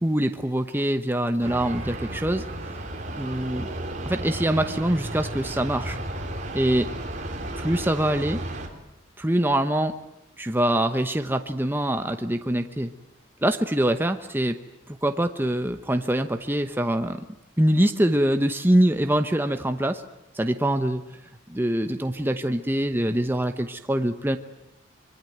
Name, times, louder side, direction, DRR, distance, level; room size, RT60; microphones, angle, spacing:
voice 1, 0.0-2.4 3.2-3.7 4.0-6.0 6.5-6.9 7.6-8.4 9.2-10.0 10.4-12.9 13.4-14.6 14.9-17.2 17.6-20.0 20.3-21.0 21.5-24.4, right 1 dB, 10° right, 7 dB, 0.9 m, -24 dB
sound 1, 1.4-8.7, right 1 dB, 40° right, 3.7 m, -33 dB
25.0 x 22.5 x 9.4 m, 0.88 s
head